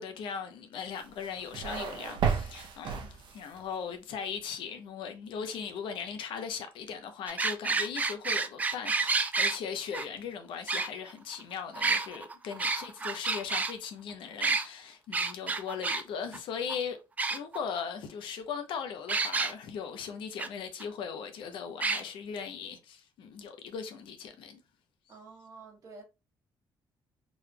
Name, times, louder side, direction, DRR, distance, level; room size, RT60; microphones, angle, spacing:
voice 1, 0.0-17.0 17.3-24.6, left 6 dB, 75° left, 0.8 m, -39 dB
sound 1, 1.0-3.6, right 7 dB, 65° right, 0.7 m, -33 dB
sound 2, 7.3-9.6 9.9-10.0 10.7-11.4 11.7-13.7 14.4-14.7 15.1-16.0 16.3-16.4 16.7-16.8 17.2-17.8 19.1-19.5 20.4-20.5 20.8-20.9 21.8-22.0, right 4 dB, 20° right, 0.3 m, -29 dB
voice 2, 25.1-26.0, right 3 dB, 40° right, 1.4 m, -49 dB
3.9 x 3.3 x 2.3 m
cardioid pair, 175°, 9 cm